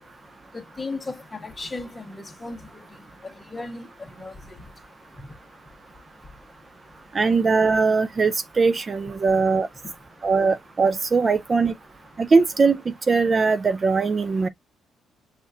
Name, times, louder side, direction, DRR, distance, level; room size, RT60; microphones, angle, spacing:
voice 1, 0.5-2.1 2.4-2.6 3.5-3.9 4.2-4.3, left 3 dB, 20° left, 1.2 m, -34 dB
voice 2, 7.1-9.7 10.2-11.7 12.2-14.5, right 4 dB, 35° right, 0.4 m, -20 dB
5.3 x 2.5 x 2.6 m
cardioid pair, 90°, 0 cm